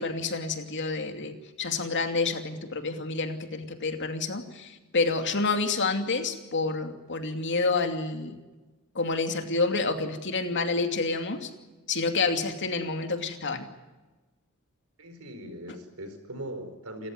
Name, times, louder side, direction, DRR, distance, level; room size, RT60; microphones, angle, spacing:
voice 1, 0.0-8.4 8.9-11.5 11.9-13.6, left 3 dB, 55° left, 5 dB, 2.6 m, -28 dB
voice 2, 15.0-17.1, right 1 dB, 70° right, 9 dB, 4.7 m, -40 dB
29.5 x 14.5 x 9.5 m, 1.2 s
head